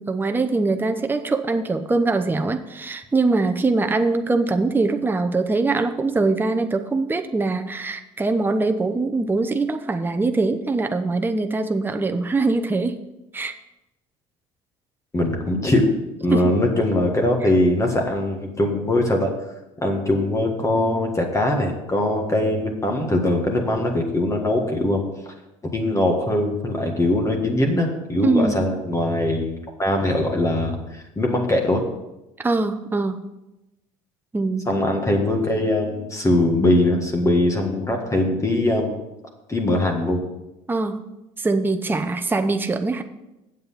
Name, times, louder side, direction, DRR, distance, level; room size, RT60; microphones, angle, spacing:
voice 1, 0.0-13.0 13.3-13.5 16.3-16.4 28.2-28.6 32.4-33.2 34.3-34.7 40.7-41.1 41.4-43.0, right 3 dB, 15° right, 7 dB, 0.7 m, -22 dB
voice 2, 15.1-15.9 16.2-19.5 19.8-25.3 25.6-31.8 34.7-39.0 39.5-40.2, left 1 dB, 20° left, 2 dB, 1.6 m, -21 dB
7.9 x 7.6 x 5.7 m, 0.97 s
supercardioid pair, 80°, 16 cm